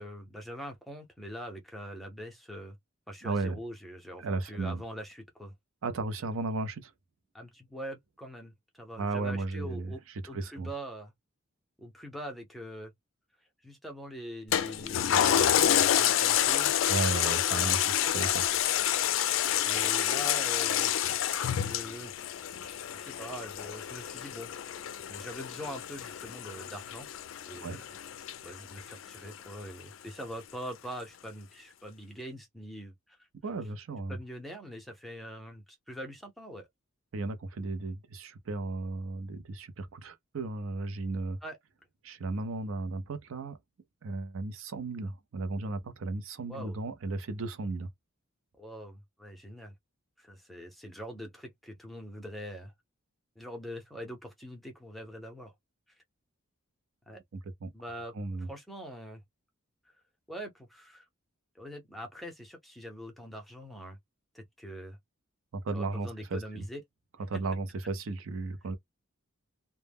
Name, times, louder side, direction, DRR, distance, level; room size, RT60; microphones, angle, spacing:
voice 1, 0.0-2.8 3.1-5.5 7.3-11.1 11.8-12.9 13.6-16.8 17.2-17.9 19.6-20.9 21.4-22.1 22.6-24.5 25.1-27.1 27.5-27.9 28.4-33.2 34.1-36.7 41.4-41.6 46.5-46.7 48.6-49.7 50.2-52.7 53.4-55.5 57.1-57.2 57.7-58.1 58.5-59.2 60.3-61.1 61.5-64.0 64.3-65.0 65.7-66.8, equal, ahead, 0.6 m, -43 dB
voice 2, 3.2-3.6 4.2-4.8 5.8-6.9 9.0-10.7 16.9-18.6 27.6-27.8 33.4-34.2 37.1-41.4 42.0-43.6 44.0-47.9 57.3-57.7 58.1-58.5 65.5-66.6 67.3-68.7, right 3 dB, 70° right, 0.5 m, -35 dB
Toilet flush, 14.5-29.3 29.8-29.9, left 10 dB, 65° left, 0.3 m, -28 dB
2.1 x 2.0 x 3.3 m
head